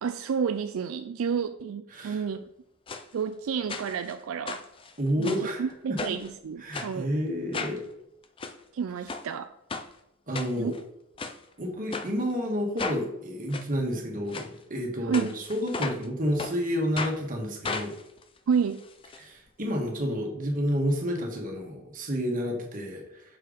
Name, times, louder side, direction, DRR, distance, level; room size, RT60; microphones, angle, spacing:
voice 1, 0.0-2.4 3.1-4.6 5.2-7.1 8.7-9.5 10.6-10.7 15.0-15.3 18.5-18.8, right 6 dB, 75° right, 9 dB, 0.4 m, -30 dB
sound 1, 2.9-3.0 3.7-4.1 4.5-5.5 6.0-6.3 6.7-6.9 7.5-7.8 8.2-8.5 9.1-9.3 9.7-9.9 10.3-10.8 11.2-11.4 11.9-12.1 12.8-13.0 13.5-13.7 14.3-14.5 15.1-16.1 16.4-16.5 17.0-17.2 17.6-19.2 19.5-19.6 19.8-19.9, left 4 dB, 25° left, 0.4 m, -35 dB
voice 2, 5.0-5.6 5.9-6.1 6.6-7.8 10.3-10.7 11.6-17.9 19.2-23.2, equal, 40° right, 1 dB, 1.6 m, -30 dB
6.6 x 4.5 x 5.1 m, 0.80 s
head